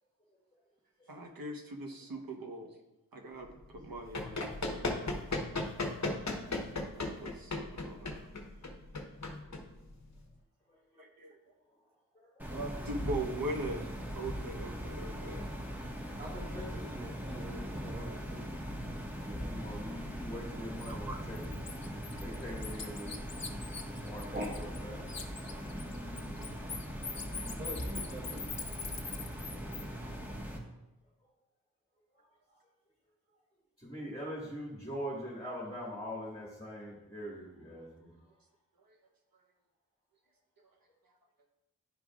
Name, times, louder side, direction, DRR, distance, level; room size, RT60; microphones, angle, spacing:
voice 1, 1.1-2.7 3.1-5.3 6.8-8.2 11.0-11.4 12.5-13.9 14.1-15.4 19.6-20.0 20.9-21.2 27.0-27.1, right 1 dB, 85° right, 2 dB, 1.1 m, -41 dB
Run, 3.8-10.2, left 2 dB, 50° left, 1.0 m, -36 dB
voice 2, 12.2-12.6 17.6-17.9 19.2-21.6 22.2-23.1 24.0-25.5 28.4-28.5 29.6-29.8 33.8-38.1, equal, 10° left, -5 dB, 1.9 m, -43 dB
sound 1, 12.4-30.6, equal, 5° right, 1.4 m, -40 dB
voice 3, 16.2-18.4 24.3-24.4 27.6-28.4, equal, 25° right, -4 dB, 1.2 m, -43 dB
Bird, 20.8-20.9 21.3-24.8 25.1-29.8, left 5 dB, 75° left, 0.8 m, -42 dB
11.0 x 5.0 x 2.4 m, 0.98 s
wide cardioid pair, 50°, 34 cm